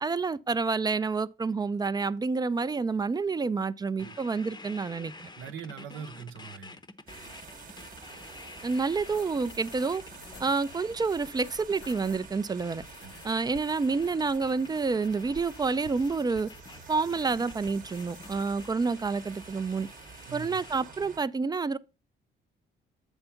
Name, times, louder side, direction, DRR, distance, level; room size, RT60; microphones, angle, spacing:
voice 1, 0.0-5.3 8.6-10.0 10.4-12.8 13.2-16.5 16.9-19.9 20.3-21.8, right 4 dB, 20° right, 0.4 m, -28 dB
sound 1, 4.0-21.0, left 3 dB, 20° left, 0.7 m, -49 dB
voice 2, 5.4-6.8 13.0-13.2 20.3-20.6, right 7 dB, 80° right, 0.8 m, -42 dB
sound 2, 7.1-21.2, right 5 dB, 45° right, 0.9 m, -49 dB
sound 3, 8.6-18.7, left 8 dB, 65° left, 0.6 m, -53 dB
8.0 x 3.5 x 5.6 m
cardioid pair, 90°, 20 cm